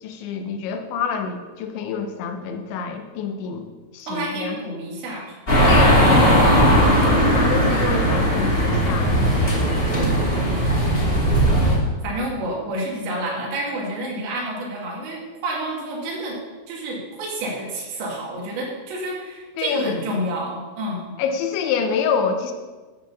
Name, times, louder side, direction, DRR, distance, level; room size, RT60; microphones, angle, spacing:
voice 1, 0.0-3.7 3.9-4.6 5.6-6.9 7.2-9.8 19.6-20.0 21.2-22.5, left 6 dB, 90° left, 5 dB, 3.3 m, -27 dB
voice 2, 4.1-6.7 10.1-11.3 12.0-16.4 16.7-21.1, right 1 dB, 80° right, -3 dB, 4.5 m, -30 dB
sound 1, 5.5-11.8, equal, 20° left, 1.5 m, -17 dB
13.0 x 4.8 x 7.0 m, 1.3 s
omnidirectional pair, 5.1 m